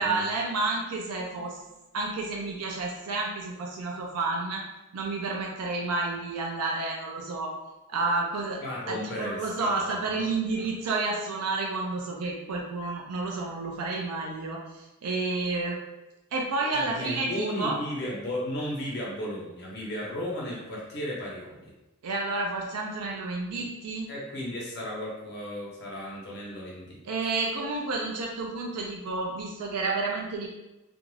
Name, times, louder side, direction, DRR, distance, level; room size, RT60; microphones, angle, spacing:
voice 1, 0.0-1.6 1.9-4.6 4.9-7.5 7.9-8.6 8.9-15.8 16.3-17.7 22.0-24.1 27.0-30.5, right 3 dB, 75° right, 0 dB, 0.4 m, -30 dB
voice 2, 8.6-10.2 10.6-10.7 16.7-21.7 23.6-23.7 24.1-27.0, left 1 dB, 50° left, -5 dB, 0.9 m, -35 dB
2.5 x 2.2 x 3.1 m, 1.0 s
head